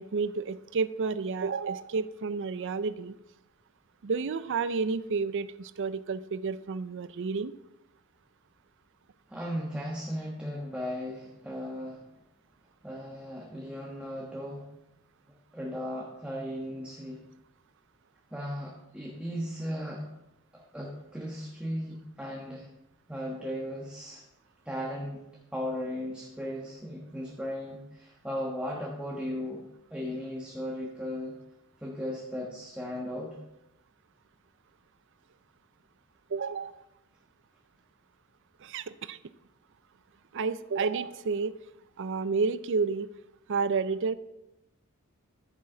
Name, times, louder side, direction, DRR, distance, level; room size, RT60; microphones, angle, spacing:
voice 1, 0.0-3.1 4.0-7.5 36.3-36.8 38.6-39.2 40.3-41.5 42.0-43.1 43.5-44.1, right 4 dB, 60° right, 14 dB, 0.5 m, -30 dB
voice 2, 9.3-12.0 12.8-14.6 15.5-17.2 18.3-20.1 20.5-22.7 23.1-24.2 24.6-25.2 25.5-29.6 29.9-31.4 31.8-33.4, equal, 5° right, -3 dB, 1.3 m, -36 dB
14.0 x 7.3 x 3.8 m, 0.90 s
head